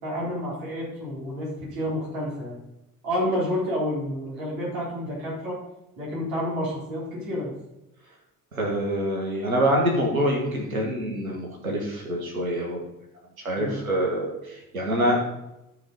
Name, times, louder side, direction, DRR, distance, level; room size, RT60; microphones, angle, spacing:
voice 1, 0.0-2.6 3.0-5.6 6.0-7.5 13.5-13.8, equal, 60° right, -6 dB, 4.3 m, -29 dB
voice 2, 8.5-12.8 13.4-15.2, equal, 85° right, -1 dB, 1.7 m, -25 dB
13.5 x 4.7 x 5.4 m, 0.91 s
figure-of-eight pair, 50°, 41 cm